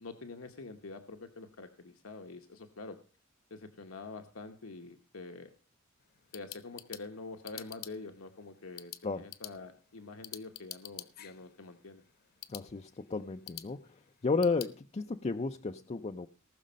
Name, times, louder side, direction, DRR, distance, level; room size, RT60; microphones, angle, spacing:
voice 1, 0.0-3.0 3.5-5.5 6.3-12.0, left 3 dB, 70° left, 6 dB, 1.0 m, -46 dB
sound 1, 6.0-14.8, left 12 dB, 45° left, 0.9 m, -50 dB
voice 2, 12.5-13.9 14.2-16.3, left 4 dB, 30° left, 7 dB, 0.5 m, -33 dB
19.0 x 6.4 x 5.2 m, 0.39 s
head